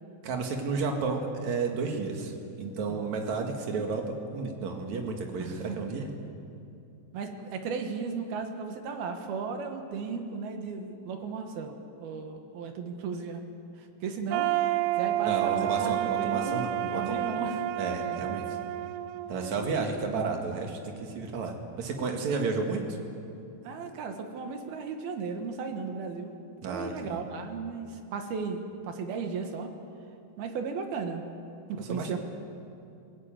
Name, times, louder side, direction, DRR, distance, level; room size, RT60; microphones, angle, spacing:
voice 1, 0.2-6.1 15.2-17.2 17.8-18.6 19.3-23.0 26.6-27.2 31.9-32.2, right 4 dB, 50° right, 3 dB, 2.5 m, -32 dB
voice 2, 5.4-5.8 7.1-13.4 13.8-17.6 23.6-26.3 26.6-29.8 30.4-31.2 31.7-32.2, right 5 dB, 65° right, 5 dB, 2.9 m, -35 dB
sound 1, 14.3-20.2, right 14 dB, 85° right, 3.1 m, -30 dB
21.5 x 17.0 x 9.0 m, 2.6 s
omnidirectional pair, 5.4 m